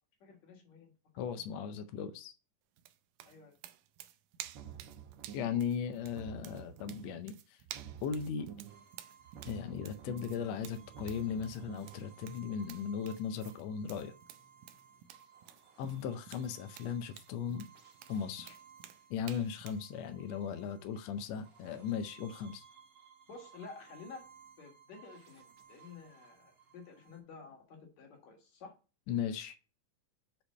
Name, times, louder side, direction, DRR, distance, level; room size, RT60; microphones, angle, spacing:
voice 1, 0.2-0.9 1.4-1.6 3.2-3.6 23.3-24.3 24.6-25.4 25.7-28.7, left 4 dB, 65° left, 2.8 m, -51 dB
voice 2, 1.2-2.3 5.3-7.6 8.0-8.5 9.5-14.1 15.8-17.7 18.1-18.6 19.1-22.6 29.1-29.6, left 7 dB, 80° left, 1.5 m, -37 dB
sound 1, 2.8-19.9, right 12 dB, 85° right, 2.2 m, -52 dB
sound 2, 4.4-5.7 6.0-7.3 7.6-8.9 9.2-12.0, right 9 dB, 70° right, 1.4 m, -50 dB
sound 3, 8.7-27.2, right 7 dB, 45° right, 1.7 m, -60 dB
6.6 x 4.4 x 5.3 m
omnidirectional pair, 3.7 m